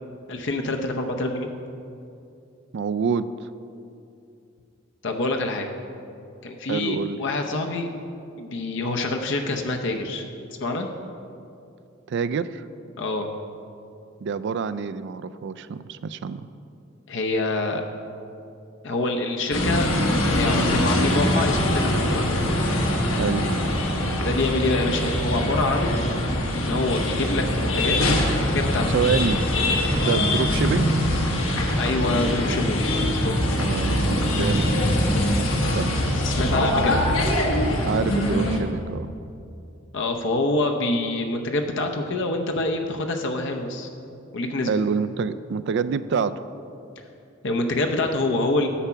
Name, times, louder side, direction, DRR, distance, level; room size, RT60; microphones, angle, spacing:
voice 1, 0.3-1.5 5.0-5.7 6.4-7.9 8.4-10.3 10.6-10.9 13.0-13.3 17.1-17.8 18.8-19.9 20.3-22.3 24.2-26.0 26.5-28.0 28.3-28.9 31.8-32.9 33.2-33.3 36.0-37.0 39.9-43.9 44.3-44.8 47.4-48.7, left 2 dB, 65° left, 3 dB, 0.7 m, -26 dB
voice 2, 2.7-3.5 6.7-7.2 12.1-12.6 14.2-16.5 23.2-23.5 28.9-29.5 30.0-30.9 33.6-34.1 34.4-35.3 35.7-36.0 37.8-39.1 44.7-46.4, right 5 dB, 60° right, 14 dB, 0.4 m, -27 dB
sound 1, 19.5-38.6, left 1 dB, 80° left, 1.5 m, -23 dB
10.0 x 7.2 x 5.7 m, 2.6 s
head